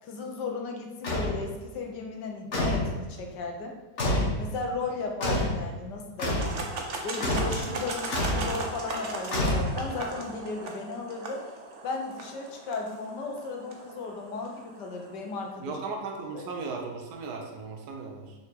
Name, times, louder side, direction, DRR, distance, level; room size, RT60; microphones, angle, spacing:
voice 1, 0.0-3.8 4.4-6.6 7.0-11.4 11.8-15.8 16.3-16.5, left 3 dB, 75° left, 2 dB, 1.6 m, -35 dB
sound 1, 1.0-1.4 2.5-2.9 4.0-4.4 5.2-5.6 6.2-6.5 7.2-7.6 8.1-8.5 9.3-10.0, left 1 dB, 40° left, 1.8 m, -27 dB
sound 2, 6.2-15.3, right 2 dB, 50° right, 1.2 m, -38 dB
voice 2, 15.6-18.3, right 4 dB, 65° right, 2 dB, 1.4 m, -36 dB
6.3 x 5.0 x 4.6 m, 1.3 s
omnidirectional pair, 1.9 m